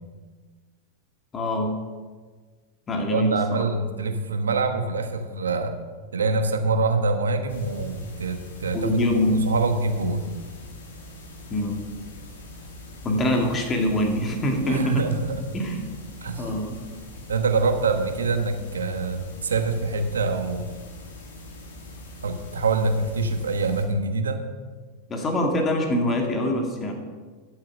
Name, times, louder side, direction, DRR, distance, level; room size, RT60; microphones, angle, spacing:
voice 1, 1.3-1.7 2.9-3.7 8.7-9.4 11.5-11.8 13.0-15.0 15.5-15.8 16.4-16.8 25.1-26.9, left 1 dB, 25° left, 2 dB, 2.2 m, -24 dB
voice 2, 3.1-5.7 6.1-10.2 14.6-15.4 16.2-16.5 17.3-20.7 22.2-24.4, right 3 dB, 85° right, 7 dB, 1.1 m, -25 dB
sound 1, 7.5-23.9, left 2 dB, 75° left, 2.5 m, -43 dB
11.0 x 7.5 x 6.2 m, 1.5 s
hypercardioid pair, 100°, 0 cm